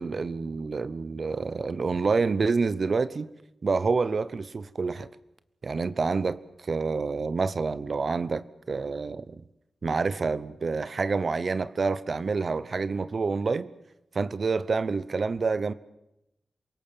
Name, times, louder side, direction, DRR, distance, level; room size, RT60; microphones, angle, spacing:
voice 1, 0.0-3.3 3.6-5.1 5.6-9.4 9.8-13.7 14.1-15.7, right 4 dB, 60° right, 0.8 m, -28 dB
27.5 x 18.0 x 7.4 m
cardioid pair, 65°, 0 cm